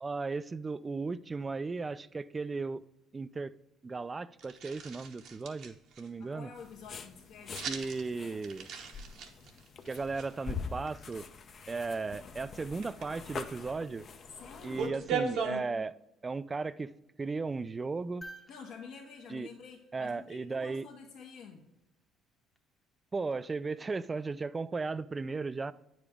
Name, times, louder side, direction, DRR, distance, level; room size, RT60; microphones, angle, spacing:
voice 1, 0.0-2.8 3.1-3.5 3.8-6.5 7.7-8.7 9.9-11.3 11.7-14.1 14.6-15.9 16.2-16.9 17.2-18.3 19.3-19.5 19.9-20.8 23.1-25.7, right 4 dB, 25° right, 0.3 m, -36 dB
sound 1, 4.4-6.1 7.6-8.1 8.4-10.3 10.9-11.1 12.7-13.1 14.0-14.1 14.3-15.6, right 5 dB, 70° right, 1.0 m, -37 dB
voice 2, 6.2-8.4 14.4-15.2 18.5-21.6, left 5 dB, 70° left, 1.1 m, -49 dB
sound 2, 6.5-14.9, left 5 dB, 50° left, 0.6 m, -45 dB
sound 3, 18.2-20.5 22.5-22.6, right 1 dB, 15° left, 0.8 m, -53 dB
8.8 x 5.0 x 3.5 m
supercardioid pair, 75°, 0 cm